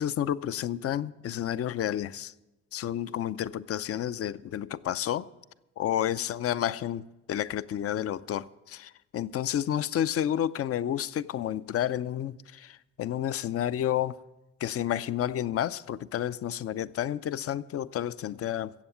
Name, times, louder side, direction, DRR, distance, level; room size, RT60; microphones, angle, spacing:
voice 1, 0.0-2.3 2.7-5.3 5.8-14.2 14.6-18.7, left 11 dB, 50° left, 0.5 m, -30 dB
15.0 x 8.0 x 7.1 m
cardioid pair, 90°, 30 cm